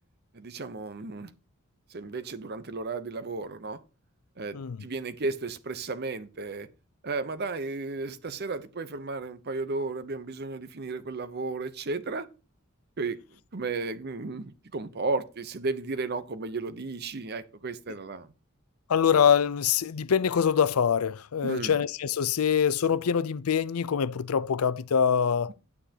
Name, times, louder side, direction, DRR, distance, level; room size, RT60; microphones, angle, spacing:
voice 1, 0.3-1.3 1.9-3.8 4.4-6.7 7.0-12.3 13.0-13.2 13.5-18.3 21.4-21.8, right 3 dB, 50° right, 0.8 m, -34 dB
voice 2, 18.9-25.5, left 7 dB, 90° left, 0.5 m, -24 dB
9.7 x 9.0 x 2.9 m
head